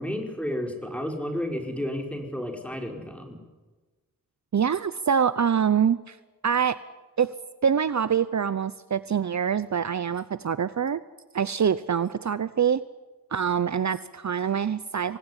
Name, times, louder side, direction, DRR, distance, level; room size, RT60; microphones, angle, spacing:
voice 1, 0.0-3.4, left 1 dB, 5° left, 3 dB, 5.6 m, -32 dB
voice 2, 4.5-6.2 6.4-6.8 7.2-7.3 7.6-11.0 11.3-12.8 13.3-15.2, right 7 dB, 55° right, 15 dB, 0.8 m, -25 dB
26.5 x 19.5 x 9.9 m, 1.2 s
wide cardioid pair, 75°, 35 cm